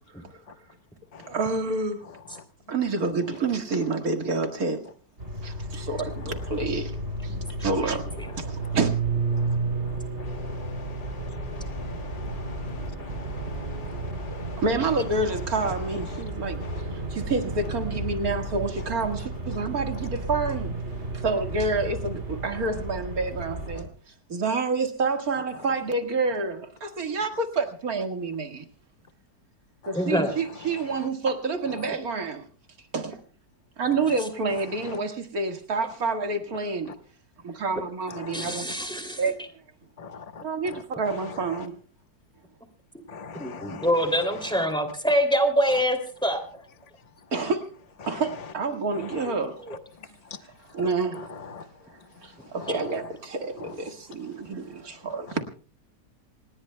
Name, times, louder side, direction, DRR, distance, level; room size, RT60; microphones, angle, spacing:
voice 1, 1.3-2.0 2.7-4.8 5.4-6.9 7.2-7.3 7.6-8.1 8.4-8.9 14.6-16.6 17.1-20.8 21.1-23.9 24.3-28.6 29.9-32.4 32.9-33.2 33.8-37.0 37.4-38.7 39.2-39.3 40.4-41.7 47.3-47.7 48.1-49.6 50.7-51.3 52.2-55.4, right 3 dB, 55° right, 5 dB, 2.2 m, -28 dB
sound 1, 5.2-23.8, right 2 dB, 40° right, 3.4 m, -32 dB
voice 2, 10.2-14.6 16.6-16.8 38.2-38.6 40.0-40.4 43.1-43.8 51.5-51.6 52.6-52.7, left 5 dB, 25° left, 8 dB, 1.0 m, -43 dB
voice 3, 29.9-30.3 37.8-37.9 38.3-39.2 42.9-43.0 43.4-46.6 49.3-49.4 49.6-49.8, equal, 5° left, 5 dB, 2.6 m, -25 dB
27.5 x 19.0 x 2.2 m, 0.39 s
omnidirectional pair, 1.9 m